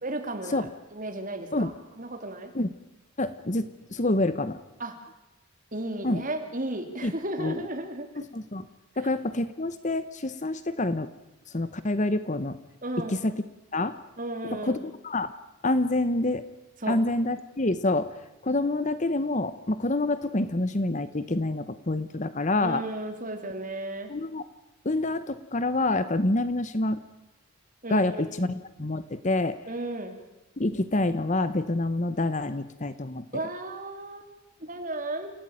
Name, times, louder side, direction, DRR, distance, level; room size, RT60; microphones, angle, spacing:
voice 1, 0.0-2.5 4.8-4.9 5.7-8.1 12.8-13.2 14.2-14.8 16.8-17.0 22.6-24.1 27.8-28.2 29.7-30.2 33.3-34.3 34.6-35.3, right 2 dB, 35° right, 5 dB, 3.2 m, -34 dB
voice 2, 3.2-4.6 6.0-6.2 7.0-7.1 7.4-7.6 8.2-8.6 9.0-11.1 11.5-12.6 13.1-13.3 13.7-14.0 14.6-15.3 15.6-16.4 16.9-18.1 18.4-22.8 24.1-24.4 24.8-27.0 27.9-29.6 30.6-33.2, left 2 dB, 35° left, 13 dB, 0.9 m, -27 dB
29.0 x 15.0 x 9.1 m, 1.0 s
head